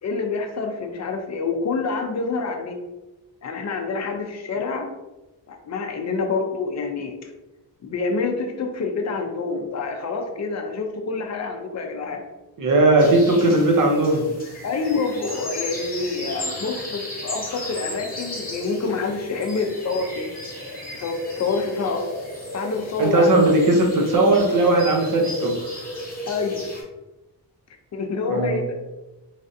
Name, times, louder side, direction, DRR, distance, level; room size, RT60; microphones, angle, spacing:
voice 1, 0.0-2.8 3.4-4.9 5.5-7.3 7.8-12.2 14.6-20.3 21.0-22.0 22.5-23.3 26.3-26.7 27.9-28.6, left 4 dB, 40° left, 4 dB, 0.4 m, -27 dB
voice 2, 12.6-14.2 23.0-25.6 28.3-28.6, right 2 dB, 50° right, 2 dB, 0.6 m, -18 dB
sound 1, 13.0-26.8, left 1 dB, 20° left, 0.8 m, -34 dB
3.2 x 2.4 x 2.6 m, 1.1 s
wide cardioid pair, 150°, 41 cm